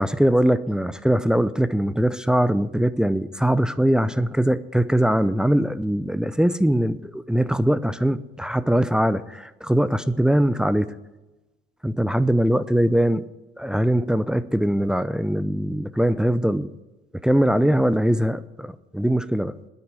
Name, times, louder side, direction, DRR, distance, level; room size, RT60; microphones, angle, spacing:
voice 1, 0.0-10.9 11.8-13.2 13.6-16.7 17.2-19.5, equal, 5° right, 13 dB, 0.6 m, -21 dB
9.6 x 9.2 x 9.6 m, 1.1 s
hypercardioid pair, 70°, 20 cm